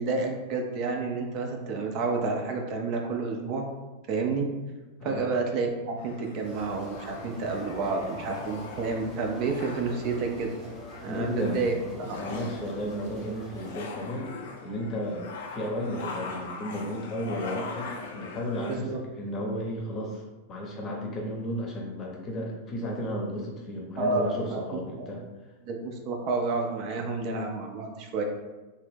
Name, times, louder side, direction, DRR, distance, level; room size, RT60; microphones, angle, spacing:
voice 1, 0.0-3.7 4.1-4.5 5.0-10.6 11.0-11.7 12.0-12.2 18.7-19.0 24.0-24.6 25.0-25.1 25.6-28.2, right 3 dB, 40° right, 2 dB, 0.4 m, -30 dB
sound 1, 6.0-18.8, left 4 dB, 55° left, 0.3 m, -41 dB
sound 2, 6.4-13.7, equal, 15° right, 0.7 m, -45 dB
voice 2, 11.1-14.3 14.6-25.2, equal, 30° left, -1 dB, 0.7 m, -34 dB
2.6 x 2.0 x 3.4 m, 1.2 s
figure-of-eight pair, 90°, 0 cm